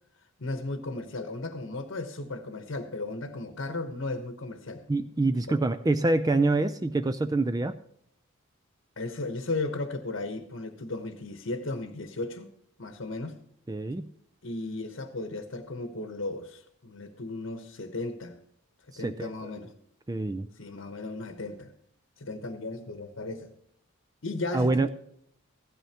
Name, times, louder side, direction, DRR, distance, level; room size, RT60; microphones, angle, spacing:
voice 1, 0.4-4.8 9.0-12.5 12.8-13.4 14.4-18.4 19.0-19.7 20.6-21.7 22.2-23.5 24.2-24.9, left 2 dB, 60° left, 1.0 m, -35 dB
voice 2, 4.9-7.8 13.7-14.1 18.9-19.5 20.1-20.5 24.5-24.9, right 2 dB, 15° right, 0.3 m, -26 dB
15.5 x 12.5 x 2.9 m
head